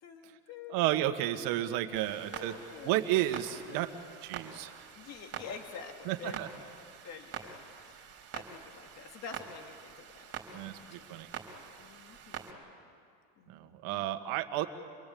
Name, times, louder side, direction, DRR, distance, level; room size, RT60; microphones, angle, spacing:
voice 1, 0.0-3.2 3.7-4.0 4.3-4.5 4.9-6.7 7.0-11.3 11.8-12.6 13.4-14.1, left 6 dB, 40° left, 4 dB, 2.5 m, -49 dB
voice 2, 0.7-2.5 2.8-3.9 4.2-4.8 6.1-6.5 10.5-11.3 13.5-14.7, right 14 dB, 55° right, 7 dB, 1.8 m, -32 dB
Clock, 1.9-12.5, right 8 dB, 40° right, 3.8 m, -46 dB
26.5 x 21.5 x 8.7 m, 2.3 s
supercardioid pair, 130°, 41 cm